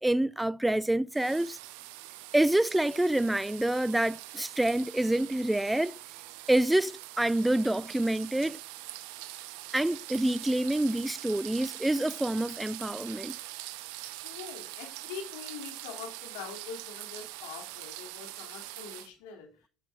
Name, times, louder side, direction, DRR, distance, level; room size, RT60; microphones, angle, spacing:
voice 1, 0.0-1.6 2.3-5.9 6.5-8.6 9.7-13.4, right 1 dB, 5° right, 0.3 m, -27 dB
sound 1, 1.1-19.1, right 16 dB, 70° right, 0.7 m, -43 dB
voice 2, 14.2-19.5, left 6 dB, 75° left, 2.8 m, -44 dB
17.0 x 6.1 x 2.5 m
hypercardioid pair, 90°, 0 cm